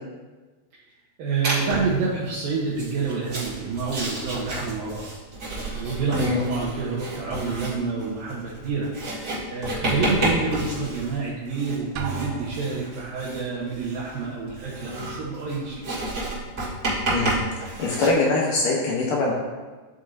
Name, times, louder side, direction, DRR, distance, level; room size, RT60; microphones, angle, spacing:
voice 1, 1.2-5.1 5.7-8.9 9.5-16.1, right 4 dB, 70° right, -6 dB, 2.5 m, -28 dB
Writing, 1.4-2.0 2.7-18.1, right 1 dB, 30° right, 2.9 m, -31 dB
Drum, 12.0-13.2, right 7 dB, 85° right, 3.0 m, -34 dB
voice 2, 17.8-19.3, left 3 dB, 70° left, -3 dB, 2.2 m, -22 dB
12.0 x 7.0 x 2.7 m, 1.3 s
omnidirectional pair, 4.8 m